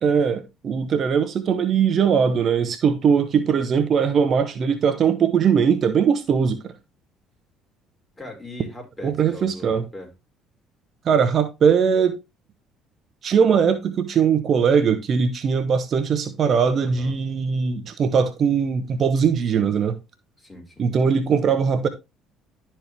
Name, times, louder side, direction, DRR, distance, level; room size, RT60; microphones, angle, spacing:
voice 1, 0.0-6.7 9.0-9.8 11.0-12.2 13.2-19.9 20.8-21.9, right 6 dB, 50° right, 1.0 m, -20 dB
voice 2, 8.2-10.1 16.8-17.2 19.5-19.7 20.4-20.9, left 1 dB, 20° left, 4.4 m, -40 dB
12.0 x 4.5 x 3.4 m
supercardioid pair, 70°, 0 cm